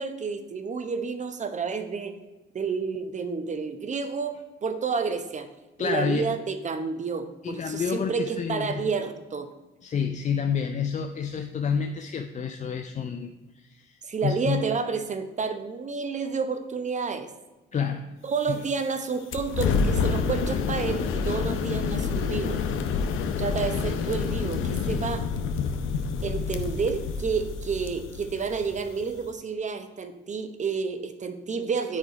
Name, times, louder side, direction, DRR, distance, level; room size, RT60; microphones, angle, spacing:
voice 1, 0.0-2.2 2.5-5.5 5.8-9.5 14.0-17.3 18.2-22.6 23.4-25.3 26.2-32.0, right 5 dB, 35° right, 9 dB, 0.9 m, -30 dB
voice 2, 5.8-6.3 7.4-8.8 9.8-14.6 17.7-18.0 18.5-18.6, left 6 dB, 40° left, 5 dB, 0.5 m, -29 dB
sound 1, 19.3-29.3, left 5 dB, 90° left, 0.8 m, -28 dB
9.5 x 4.8 x 5.0 m, 1.1 s
cardioid pair, 90°, 20 cm